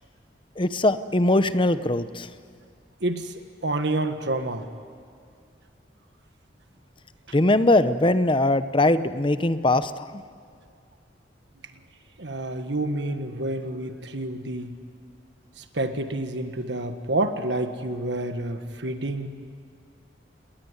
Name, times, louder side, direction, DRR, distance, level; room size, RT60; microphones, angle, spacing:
voice 1, 0.6-2.3 7.3-10.2, left 2 dB, 25° left, 12 dB, 0.9 m, -21 dB
voice 2, 3.0-3.3 3.6-4.6 12.2-14.7 15.6-19.3, right 2 dB, 70° right, 8 dB, 1.5 m, -28 dB
29.5 x 19.5 x 9.8 m, 2.2 s
head